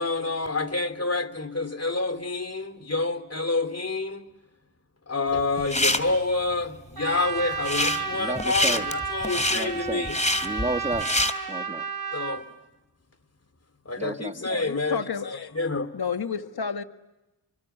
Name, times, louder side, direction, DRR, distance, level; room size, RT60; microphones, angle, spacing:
voice 1, 0.0-4.3 5.1-10.2 12.1-12.5 13.8-15.9, left 3 dB, 30° left, 3.1 m, -28 dB
sound 1, 5.4-6.0 7.5-8.0 8.4-11.3, left 1 dB, 15° left, 3.0 m, -25 dB
Trumpet, 7.0-12.4, right 4 dB, 50° right, 3.9 m, -32 dB
voice 2, 8.1-8.9 9.5-10.1 10.4-11.1 11.5-11.8 14.0-14.7, right 2 dB, 15° right, 1.6 m, -32 dB
voice 3, 14.4-15.7 15.9-16.8, left 6 dB, 55° left, 1.9 m, -31 dB
28.5 x 24.5 x 8.5 m
cardioid pair, 45°, 46 cm